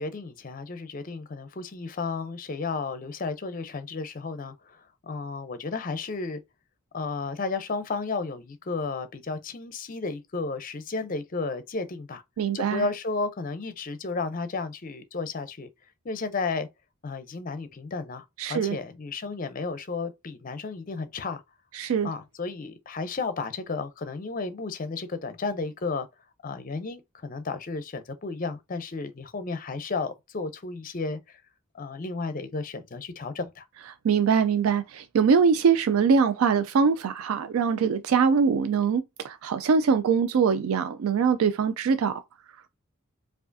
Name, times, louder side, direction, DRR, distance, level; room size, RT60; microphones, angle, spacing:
voice 1, 0.0-6.4 6.9-12.2 12.5-15.7 16.0-16.7 17.0-21.4 22.0-26.1 26.4-31.4 31.7-33.6, left 4 dB, 40° left, 0.5 m, -33 dB
voice 2, 12.4-12.9 18.4-18.8 21.7-22.1 34.0-42.2, right 6 dB, 90° right, 0.4 m, -23 dB
4.7 x 2.4 x 2.6 m
head